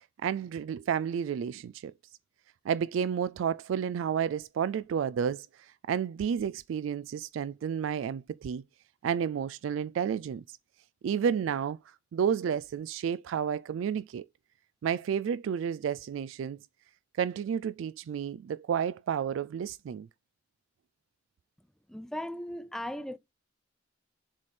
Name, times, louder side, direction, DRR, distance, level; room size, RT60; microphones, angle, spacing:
voice 1, 0.2-1.9 2.7-5.5 5.9-8.6 9.0-10.6 11.0-11.8 12.1-14.3 14.8-16.6 17.2-20.1, right 7 dB, 75° right, 0.3 m, -31 dB
voice 2, 21.9-23.2, left 1 dB, 5° left, 0.4 m, -37 dB
7.3 x 3.3 x 4.2 m
head